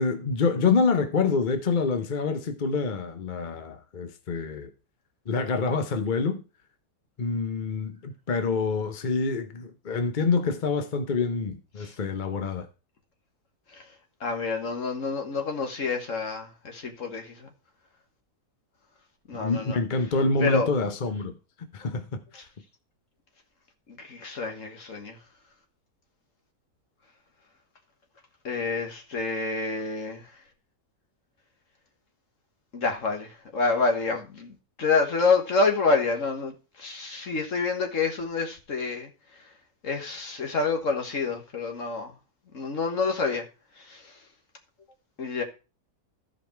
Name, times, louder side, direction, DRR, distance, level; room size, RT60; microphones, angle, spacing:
voice 1, 0.0-4.7 5.3-6.4 7.2-12.7 19.3-21.4 21.7-22.2, left 4 dB, 40° left, 0.8 m, -26 dB
voice 2, 14.2-17.5 19.3-19.8 20.4-20.7 22.3-22.4 24.0-25.2 28.4-30.3 32.7-39.1 39.8-42.1 42.5-43.4 43.9-44.0 45.2-45.4, left 4 dB, 55° left, 1.8 m, -28 dB
13.5 x 5.2 x 4.5 m
omnidirectional pair, 1.6 m